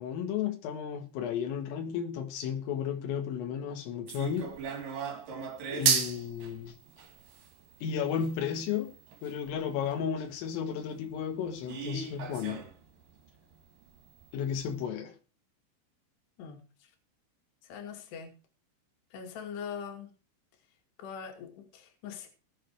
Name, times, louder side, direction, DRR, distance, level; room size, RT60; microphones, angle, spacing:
voice 1, 0.0-4.5 5.7-6.7 7.8-9.0 9.2-12.6 14.3-15.1, left 8 dB, 85° left, 4.4 m, -33 dB
sound 1, 4.1-9.9 10.4-10.5 10.9-11.0 11.7-12.9 13.1-13.2 13.5-13.6 14.2-14.3 14.5-14.7, right 6 dB, 50° right, 3.2 m, -34 dB
voice 2, 17.7-18.3 19.1-20.1 21.0-22.3, left 7 dB, 60° left, 4.3 m, -42 dB
18.5 x 7.8 x 4.7 m
omnidirectional pair, 5.7 m